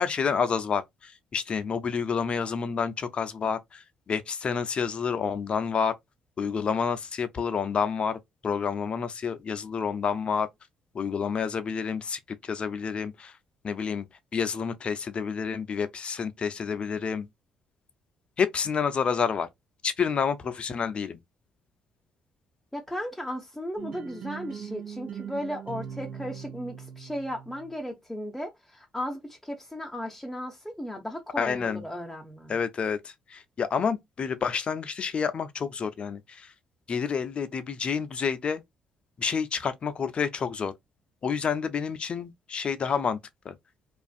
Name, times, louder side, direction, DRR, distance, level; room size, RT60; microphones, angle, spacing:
voice 1, 0.0-5.9 6.4-10.5 10.9-13.3 13.6-14.1 14.3-17.3 18.4-19.5 19.8-21.2 31.4-31.8 32.5-36.5 36.9-38.6 39.2-40.7 41.2-43.2 43.4-43.5, left 6 dB, 45° left, 0.5 m, -29 dB
voice 2, 22.7-32.6, equal, 5° left, 0.6 m, -36 dB
sound 1, 23.8-27.7, right 8 dB, 55° right, 0.7 m, -40 dB
2.5 x 2.4 x 2.3 m
hypercardioid pair, 50°, 3 cm